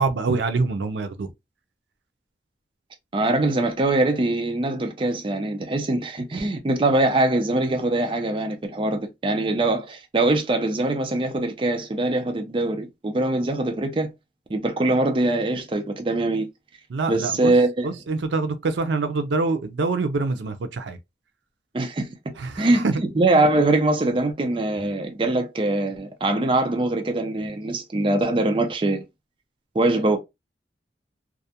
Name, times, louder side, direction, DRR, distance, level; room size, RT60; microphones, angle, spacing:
voice 1, 0.0-1.3 16.9-17.5 17.8-21.0 22.4-22.9, right 3 dB, 85° right, 0.4 m, -25 dB
voice 2, 3.1-14.1 14.5-16.5 17.1-17.9 21.7-22.1 22.6-29.0 29.7-30.2, right 2 dB, 30° right, 0.4 m, -22 dB
2.4 x 2.1 x 2.7 m
head